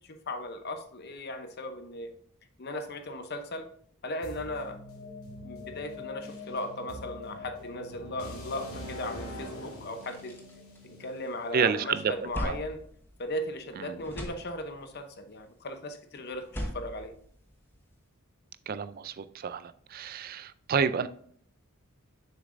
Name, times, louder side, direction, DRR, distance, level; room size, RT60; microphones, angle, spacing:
voice 1, 0.1-2.1 2.6-3.7 4.0-4.8 5.4-10.4 10.8-12.8 13.2-17.1, left 1 dB, 50° left, 0.7 m, -37 dB
sound 1, 4.2-12.1, left 2 dB, 90° left, 2.2 m, -43 dB
sound 2, 10.0-11.5 11.8-13.7 13.9-15.0 16.3-17.9, equal, 10° left, 1.1 m, -40 dB
voice 2, 11.5-12.1 12.4-12.6 13.8-13.9 18.7-19.6 19.9-21.1, right 6 dB, 45° right, 0.4 m, -29 dB
7.3 x 6.3 x 2.6 m
head